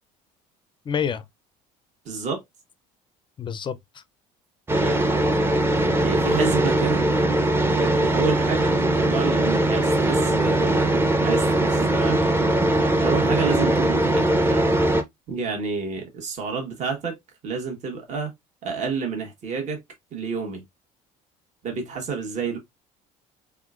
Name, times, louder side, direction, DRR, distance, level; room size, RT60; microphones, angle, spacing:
voice 1, 0.9-1.2 3.4-4.0, left 7 dB, 30° left, 0.4 m, -28 dB
voice 2, 2.0-2.4 4.7-5.0 6.0-7.1 7.7-12.2 13.0-14.7 15.3-17.2 17.4-18.3 18.6-19.8 20.1-20.6 21.6-22.6, right 5 dB, 50° right, 1.3 m, -29 dB
sound 1, 4.7-15.0, right 1 dB, 15° right, 0.6 m, -21 dB
3.6 x 3.3 x 2.4 m
supercardioid pair, 95°, 16 cm